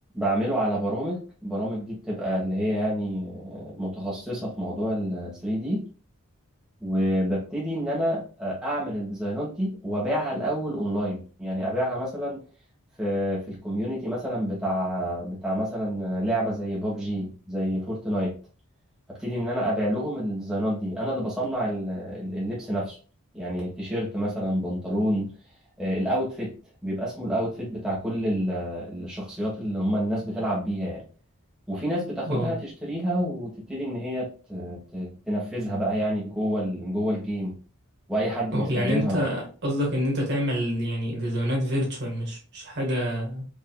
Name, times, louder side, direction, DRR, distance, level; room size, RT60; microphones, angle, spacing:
voice 1, 0.1-5.8 6.8-12.4 13.0-18.3 19.1-23.0 23.3-25.3 25.8-26.5 26.8-31.0 31.7-37.6 38.1-39.2, equal, 5° right, 1.2 m, -28 dB
voice 2, 38.5-43.4, equal, 50° right, 1.5 m, -27 dB
5.1 x 2.7 x 2.2 m
head